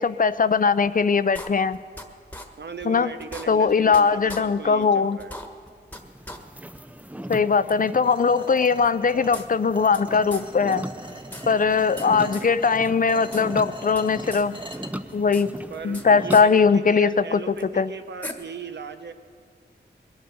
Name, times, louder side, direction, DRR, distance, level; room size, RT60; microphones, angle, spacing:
voice 1, 0.0-1.8 2.9-3.1 3.5-5.2 7.3-10.8 11.5-14.6 15.1-15.5 15.8-17.9, left 5 dB, 50° left, 15 dB, 0.5 m, -20 dB
sound 1, 1.4-2.1 2.3-2.5 2.8-2.9 3.2-4.0 4.3-4.4 4.8-4.9 5.2-6.0 6.3-6.4 6.7-6.8 7.7-7.8 8.8-10.0 10.3-10.5 10.7-10.8 11.1-12.1 12.3-12.5 12.8-13.5 13.7-14.5 14.7-16.0 16.3-16.4 17.6-17.7 18.2-18.3, left 1 dB, 10° left, 1.4 m, -39 dB
voice 2, 2.6-5.3 12.0-12.5 15.7-19.1, right 5 dB, 70° right, 9 dB, 0.9 m, -37 dB
sound 2, 5.9-16.5, right 1 dB, 10° right, 0.5 m, -39 dB
sound 3, 8.0-14.9, right 1 dB, 25° right, 1.4 m, -41 dB
21.0 x 8.7 x 6.9 m, 2.1 s
wide cardioid pair, 60°, 18 cm